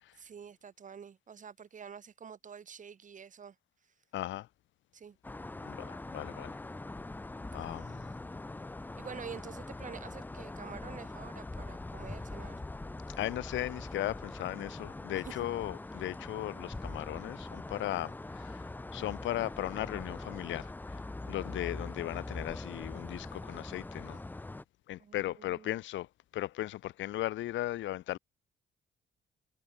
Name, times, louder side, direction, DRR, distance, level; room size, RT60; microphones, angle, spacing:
voice 1, 0.2-3.5 4.9-5.2 7.6-7.7 9.0-12.6 15.1-15.4 25.0-25.8, right 7 dB, 40° right, 1.2 m, -48 dB
voice 2, 4.1-4.5 5.6-6.6 7.5-8.1 13.2-18.6 18.9-21.0 21.3-24.2 24.9-26.1 26.3-28.2, left 14 dB, 75° left, 0.6 m, -37 dB
sound 1, 5.2-24.6, left 2 dB, 10° left, 0.4 m, -43 dB
cardioid pair, 90°, 20 cm